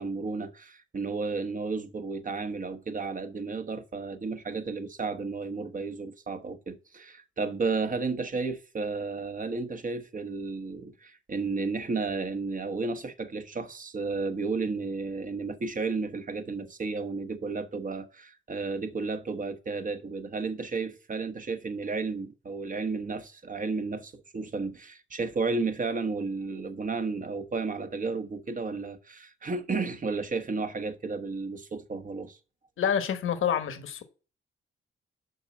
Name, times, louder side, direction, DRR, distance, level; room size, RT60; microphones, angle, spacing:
voice 1, 0.0-32.4, right 4 dB, 40° right, 1.1 m, -33 dB
voice 2, 32.8-34.0, left 8 dB, 75° left, 1.3 m, -27 dB
6.6 x 5.3 x 7.2 m
cardioid pair, 85°, 21 cm